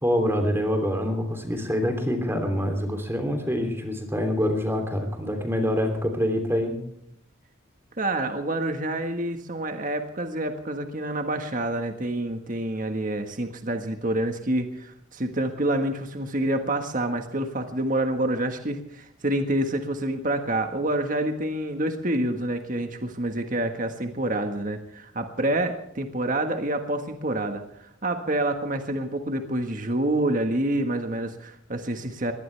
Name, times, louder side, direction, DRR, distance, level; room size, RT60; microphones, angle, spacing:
voice 1, 0.0-6.7, equal, 10° right, 5 dB, 3.0 m, -25 dB
voice 2, 8.0-32.3, right 1 dB, 40° right, 6 dB, 1.6 m, -27 dB
22.0 x 18.5 x 3.4 m, 0.72 s
head